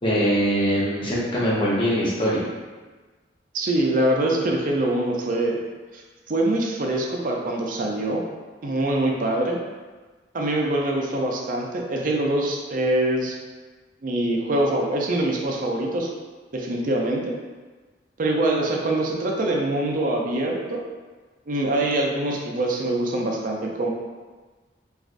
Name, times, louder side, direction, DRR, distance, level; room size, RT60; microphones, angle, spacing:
voice 1, 0.0-2.4, equal, 25° left, -7 dB, 0.7 m, -22 dB
voice 2, 3.5-5.6 5.9-6.0 6.3-8.2 8.6-9.6 10.3-13.4 14.0-16.1 16.5-17.3 18.2-20.9 21.5-23.9, right 1 dB, 45° right, 0 dB, 0.4 m, -24 dB
3.2 x 2.4 x 2.5 m, 1.3 s
head